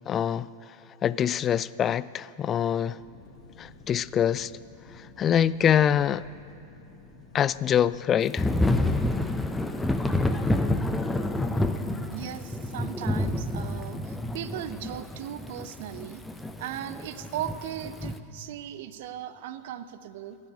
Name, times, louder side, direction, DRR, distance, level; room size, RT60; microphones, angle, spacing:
voice 1, 0.1-0.5 1.0-3.0 3.6-4.5 5.0-6.2 7.3-8.5, left 9 dB, 30° left, 0.4 m, -24 dB
sound 1, 3.0-10.1, left 4 dB, 45° left, 1.8 m, -51 dB
Thunder / Rain, 8.4-18.2, left 1 dB, 5° left, 0.8 m, -28 dB
voice 2, 12.1-16.2 16.6-20.4, right 11 dB, 60° right, 0.7 m, -37 dB
15.5 x 7.4 x 9.3 m
figure-of-eight pair, 95°, 0 cm